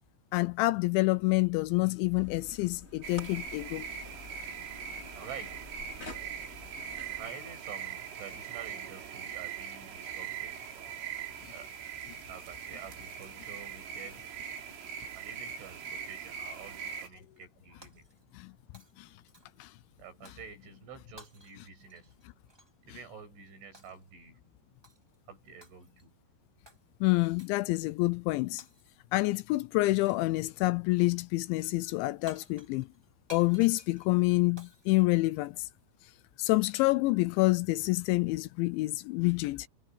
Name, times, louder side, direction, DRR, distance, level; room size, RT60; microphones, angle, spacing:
voice 1, 0.3-3.9 18.3-18.5 19.0-19.1 19.6-19.7 27.0-28.6 29.1-32.9 33.3-35.7 36.4-39.7, left 21 dB, 80° left, 2.8 m, -27 dB
sound 1, 2.1-7.3, left 2 dB, 20° left, 2.2 m, -49 dB
sound 2, 3.0-17.1, right 8 dB, 90° right, 6.0 m, -41 dB
voice 2, 5.1-5.7 7.2-10.6 11.5-11.7 12.3-14.4 15.1-18.1 20.0-22.2 22.8-24.5 25.3-26.1, right 6 dB, 75° right, 10.5 m, -48 dB
Shatter, 17.8-18.5 18.7-19.7 20.3-20.5 21.2-22.8 23.7-24.1 24.8-25.2 25.6-26.1 26.7-26.8 27.4-27.7 28.6-29.1 30.0-30.4 32.0-32.1 32.3-35.8, equal, 5° right, 2.1 m, -56 dB
omnidirectional pair, 5.5 m